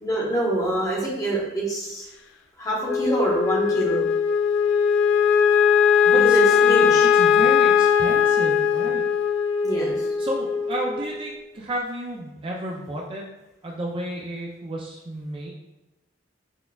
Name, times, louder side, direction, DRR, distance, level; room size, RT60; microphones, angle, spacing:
voice 1, 0.0-2.1 2.6-4.1 6.1-7.1 9.6-10.1, right 1 dB, 20° left, -4 dB, 0.9 m, -25 dB
Wind instrument woodwind instrument, 2.8-11.3, left 7 dB, 75° left, 0.3 m, -20 dB
voice 2, 6.1-6.9 7.1-9.0 10.2-13.2 13.6-15.5, right 1 dB, 30° right, -2 dB, 0.3 m, -32 dB
6.0 x 2.2 x 2.3 m, 0.97 s
head